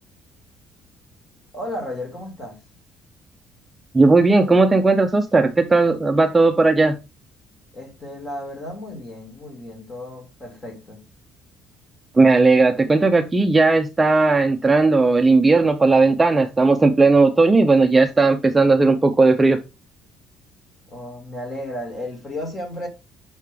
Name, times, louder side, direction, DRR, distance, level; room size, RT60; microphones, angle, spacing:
voice 1, 1.5-2.6 7.7-11.0 20.9-22.9, left 1 dB, 25° left, 1.9 m, -33 dB
voice 2, 3.9-7.0 12.1-19.6, right 3 dB, 10° right, 0.4 m, -16 dB
6.6 x 4.9 x 3.3 m
cardioid pair, 160°, 0 cm